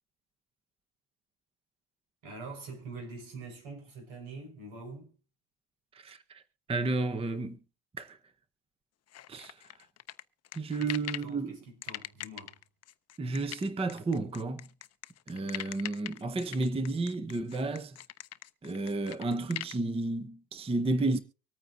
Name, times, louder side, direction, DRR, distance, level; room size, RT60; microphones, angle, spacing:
voice 1, 2.2-5.2 10.8-12.6, right 3 dB, 75° right, 5.4 m, -45 dB
voice 2, 5.9-6.4 6.7-7.6 8.0-8.2 9.3-9.6 10.5-11.6 13.2-14.7 15.3-18.0 18.6-21.2, right 3 dB, 10° right, 0.7 m, -32 dB
sound 1, 9.1-11.3 11.8-19.8, left 13 dB, 35° left, 0.5 m, -42 dB
24.5 x 8.9 x 2.6 m
cardioid pair, 125°, 48 cm